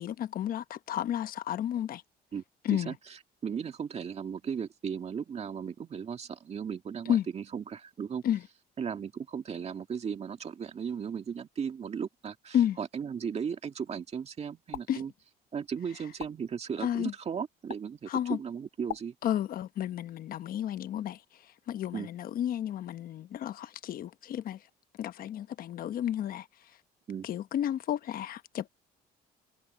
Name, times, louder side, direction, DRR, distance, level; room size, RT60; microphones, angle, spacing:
voice 1, 0.0-2.0 2.6-2.9 7.0-7.3 8.2-8.4 12.5-12.8 14.9-15.0 16.8-17.1 18.1-18.4 19.2-24.6 25.0-26.5 27.2-28.7, left 10 dB, 60° left, 1.1 m, -32 dB
voice 2, 3.4-8.2 8.8-15.1 15.5-18.1 18.4-19.1 21.9-22.1 27.1-27.3, right 7 dB, 40° right, 2.1 m, -36 dB
sound 1, 14.7-14.9 16.2-16.3 17.7-17.8 18.9-19.0, left 13 dB, 80° left, 1.8 m, -38 dB
cardioid pair, 110°, 17 cm